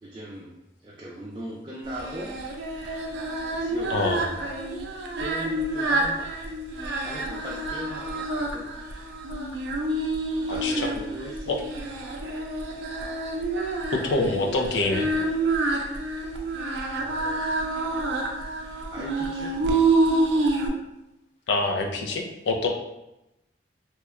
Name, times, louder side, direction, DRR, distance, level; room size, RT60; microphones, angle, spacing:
voice 1, 0.0-0.5 0.8-2.4 3.5-4.5 5.2-6.5 7.0-8.7 10.5-11.9 16.9-17.5 18.9-19.7 22.1-22.2, right 1 dB, 25° right, -4 dB, 0.3 m, -39 dB
Singing, 1.9-20.7, right 2 dB, 85° right, 0.5 m, -28 dB
voice 2, 3.9-4.2 10.5-10.9 11.5-11.6 14.0-15.1 21.5-22.7, left 3 dB, 85° left, 3 dB, 0.5 m, -25 dB
2.9 x 2.2 x 3.5 m, 0.92 s
head